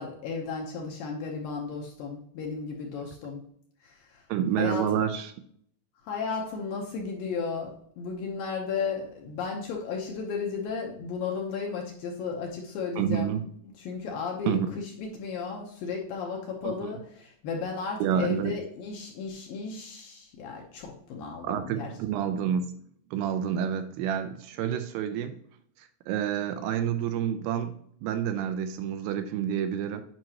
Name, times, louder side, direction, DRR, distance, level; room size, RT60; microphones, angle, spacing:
voice 1, 0.0-3.4 3.8-4.2 4.6-4.9 6.1-13.3 13.8-21.9, left 5 dB, 75° left, 0 dB, 2.2 m, -34 dB
voice 2, 4.3-5.3 13.0-13.4 14.5-14.7 16.6-16.9 18.0-18.5 21.4-22.7 23.1-25.4 25.8-27.7 28.0-30.0, right 9 dB, 80° right, 8 dB, 2.4 m, -28 dB
8.9 x 5.8 x 2.9 m, 0.64 s
omnidirectional pair, 4.9 m